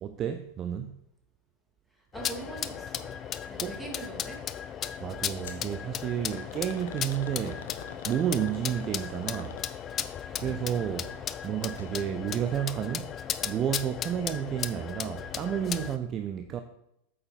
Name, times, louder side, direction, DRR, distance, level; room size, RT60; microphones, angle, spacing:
voice 1, 0.0-1.0 3.6-3.7 5.0-7.6 8.1-9.6 10.4-13.1 13.4-16.6, right 9 dB, 30° right, 0.5 m, -31 dB
voice 2, 2.0-3.1 3.5-4.5 10.3-10.7, right 3 dB, 5° right, 2.3 m, -43 dB
sound 1, 2.1-16.0, left 9 dB, 30° left, 0.4 m, -36 dB
sound 2, 5.4-5.7 6.3-10.0 11.6-11.9 12.3-12.4 13.2-13.3, left 6 dB, 60° left, 1.0 m, -46 dB
8.7 x 6.4 x 4.0 m
figure-of-eight pair, 90°, 0 cm